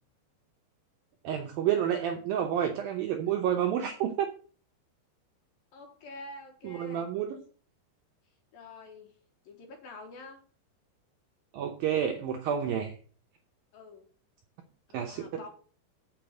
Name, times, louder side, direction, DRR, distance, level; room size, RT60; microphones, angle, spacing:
voice 1, 1.2-4.3 6.6-7.4 11.5-13.0 14.9-15.2, right 9 dB, 80° right, 4 dB, 2.1 m, -29 dB
voice 2, 5.7-7.1 8.5-9.1 9.4-10.4 13.7-14.1 14.9-15.5, left 2 dB, 65° left, 4 dB, 2.7 m, -47 dB
6.9 x 6.7 x 7.6 m, 0.42 s
omnidirectional pair, 5.2 m